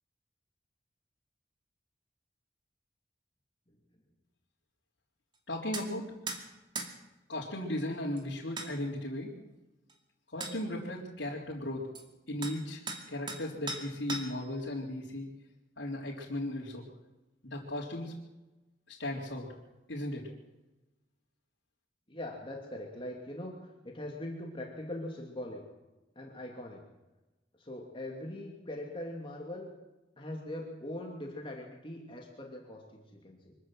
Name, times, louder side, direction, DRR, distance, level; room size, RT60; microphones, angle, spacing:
voice 1, 5.5-6.1 7.3-9.3 10.3-11.9 12.3-12.8 13.1-15.3 15.8-16.8 17.4-18.1 18.9-19.5 19.9-20.3, left 1 dB, 80° left, -5 dB, 3.9 m, -36 dB
sound 1, 5.7-5.9 6.3-6.4 6.8-6.9 8.2-8.3 8.6-8.7 9.9-10.0 10.4-10.6 12.0-12.1 12.4-12.6 12.9-13.4 13.7-14.5, right 3 dB, 25° right, 2.5 m, -38 dB
voice 2, 22.1-25.6 26.1-26.8 27.6-29.7 30.2-33.6, left 1 dB, 30° left, 0 dB, 2.7 m, -41 dB
24.5 x 14.0 x 7.9 m, 1.0 s
head